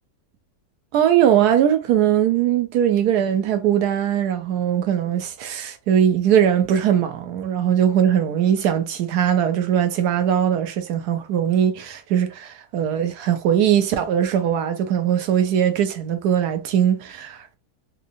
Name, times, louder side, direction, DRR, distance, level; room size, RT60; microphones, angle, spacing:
voice 1, 0.9-17.6, right 9 dB, 70° right, 1.0 m, -20 dB
3.5 x 2.9 x 2.5 m
omnidirectional pair, 1.9 m